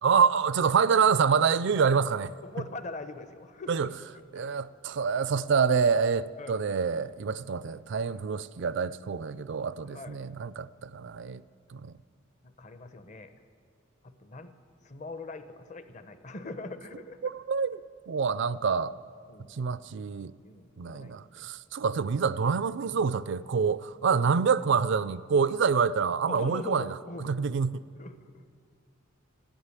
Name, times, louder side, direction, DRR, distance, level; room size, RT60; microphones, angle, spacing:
voice 1, 0.0-2.3 3.7-3.9 4.3-11.4 11.7-11.9 17.2-17.8 18.1-18.9 19.5-20.3 20.8-27.0 27.2-27.8, right 6 dB, 60° right, 0.4 m, -26 dB
voice 2, 2.4-3.9 6.4-6.6 9.9-10.2 12.4-13.3 14.0-14.5 14.8-17.2 19.3-19.5 20.4-21.5 24.1-24.2 26.3-27.3 28.0-28.2, left 3 dB, 40° left, 0.8 m, -42 dB
13.0 x 9.9 x 9.7 m
head